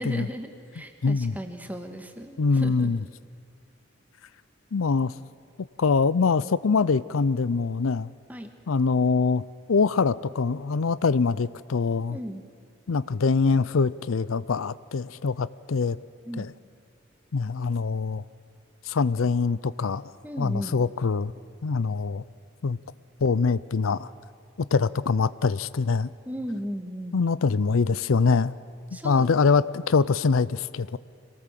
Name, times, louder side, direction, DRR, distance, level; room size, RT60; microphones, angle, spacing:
voice 1, 0.0-2.9 8.3-8.5 12.1-12.4 16.2-16.5 20.2-20.7 26.2-27.2 28.9-29.4, equal, 10° right, 5 dB, 1.6 m, -36 dB
voice 2, 1.0-1.4 2.4-3.0 4.7-5.1 5.8-8.1 8.7-12.2 12.9-16.0 16.4-16.5 17.3-18.2 18.9-20.0 20.4-21.3 21.6-22.2 22.6-22.8 23.2-24.1 24.7-26.1 27.1-28.5 28.9-31.0, left 4 dB, 85° left, 18 dB, 0.5 m, -24 dB
26.0 x 18.5 x 7.6 m, 2.4 s
head